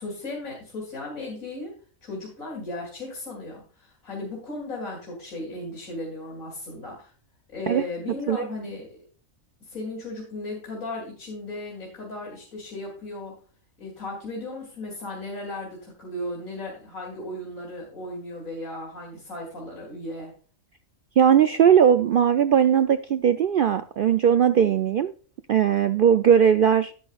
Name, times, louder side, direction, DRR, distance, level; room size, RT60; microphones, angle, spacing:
voice 1, 0.0-1.7 2.0-7.1 7.5-9.0 9.7-13.4 13.8-20.3, left 2 dB, 75° left, -2 dB, 3.6 m, -36 dB
voice 2, 21.2-25.1 25.5-26.9, right 8 dB, 65° right, 10 dB, 0.5 m, -19 dB
10.5 x 9.7 x 2.4 m, 0.39 s
omnidirectional pair, 1.4 m